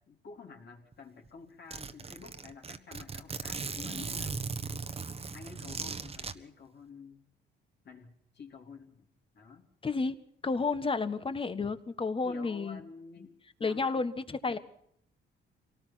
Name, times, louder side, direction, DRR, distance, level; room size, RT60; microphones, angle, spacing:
voice 1, 0.0-4.4 5.3-7.3 7.8-9.1 9.3-9.7 12.2-14.1 14.5-14.6, left 5 dB, 60° left, 1 dB, 4.2 m, -50 dB
Zipper (clothing), 0.9-1.0 1.3-1.4 1.7-6.3, right 4 dB, 30° right, 1.4 m, -38 dB
voice 2, 9.8-10.2 10.4-12.8 13.6-14.6, left 4 dB, 25° left, 12 dB, 1.6 m, -31 dB
25.0 x 18.5 x 6.0 m, 0.68 s
cardioid pair, 90°, 20 cm